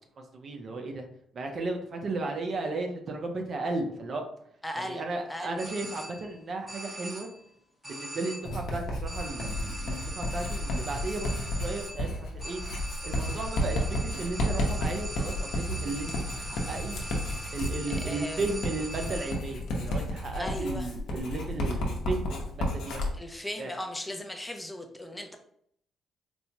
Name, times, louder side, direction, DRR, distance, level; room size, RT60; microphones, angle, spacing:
voice 1, 0.2-1.0 1.3-4.2 4.9-7.3 7.8-12.6 13.0-17.0 17.5-23.0 23.6-23.7, right 2 dB, 50° right, 4 dB, 0.7 m, -35 dB
voice 2, 4.6-5.0 5.3-5.6 17.9-18.4 20.4-20.9 23.1-25.4, left 1 dB, 10° left, 4 dB, 0.6 m, -37 dB
sound 1, 5.6-6.4 6.7-7.5 7.8-8.7 9.1-19.6, right 1 dB, 15° right, 0.9 m, -41 dB
Writing, 8.5-23.1, left 1 dB, 80° left, 0.8 m, -32 dB
4.3 x 2.2 x 2.9 m, 0.67 s
cardioid pair, 90°, 0 cm